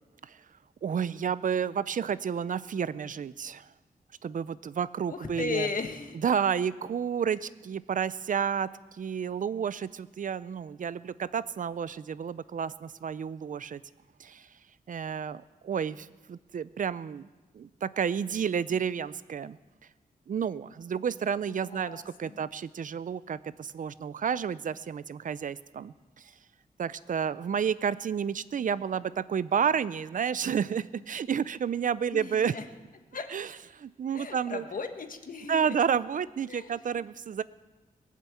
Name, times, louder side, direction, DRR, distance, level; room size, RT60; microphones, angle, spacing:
voice 1, 0.8-3.7 4.2-5.7 6.1-13.8 14.2-14.5 14.9-17.3 17.5-19.6 20.3-26.3 26.8-32.5 33.3-34.6 35.5-37.4, right 7 dB, 60° right, 17 dB, 0.5 m, -31 dB
voice 2, 5.1-6.2 21.6-22.4 32.1-32.6 33.1-33.3 34.1-35.8 36.5-36.7, left 4 dB, 60° left, 6 dB, 1.4 m, -36 dB
20.5 x 7.4 x 8.3 m, 1.2 s
wide cardioid pair, 110°, 16 cm